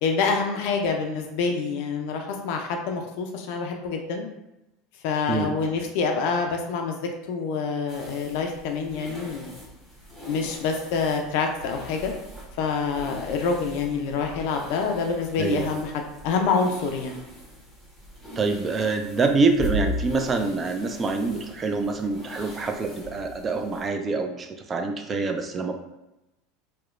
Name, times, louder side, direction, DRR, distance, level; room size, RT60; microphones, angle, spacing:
voice 1, 0.0-4.3 5.0-7.0 7.3-9.6 10.3-12.1 12.6-17.2, left 5 dB, 65° left, 3 dB, 0.3 m, -26 dB
sound 1, 7.9-23.9, left 1 dB, 5° right, 1.0 m, -39 dB
voice 2, 18.4-25.7, right 3 dB, 30° right, 5 dB, 0.3 m, -25 dB
2.9 x 2.1 x 2.4 m, 0.94 s
hypercardioid pair, 90°, 0 cm